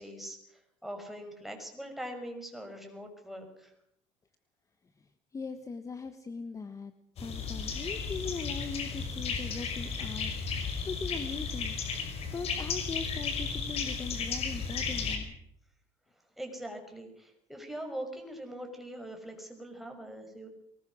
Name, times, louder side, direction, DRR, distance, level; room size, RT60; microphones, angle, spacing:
voice 1, 0.0-3.7 16.4-20.5, right 1 dB, ahead, 3 dB, 5.8 m, -42 dB
voice 2, 5.3-11.8 12.3-15.3, left 4 dB, 25° left, 10 dB, 1.4 m, -40 dB
sound 1, 7.2-15.2, left 5 dB, 50° left, 5.4 m, -34 dB
23.0 x 20.0 x 6.3 m, 0.74 s
supercardioid pair, 110°, 13 cm